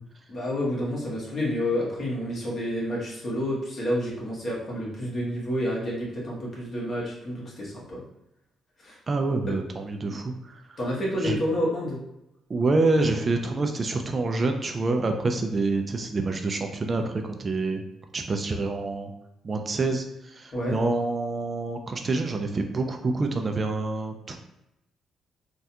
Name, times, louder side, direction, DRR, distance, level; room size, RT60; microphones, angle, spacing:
voice 1, 0.3-8.0 8.8-9.0 9.5-9.6 10.8-12.0 20.5-20.8, equal, 45° left, -5 dB, 1.3 m, -29 dB
voice 2, 9.1-10.8 11.2-11.4 12.5-17.8 18.1-19.1 19.4-24.4, right 3 dB, 35° right, 5 dB, 0.4 m, -27 dB
3.4 x 2.3 x 2.8 m, 0.88 s
cardioid pair, 90°, 0 cm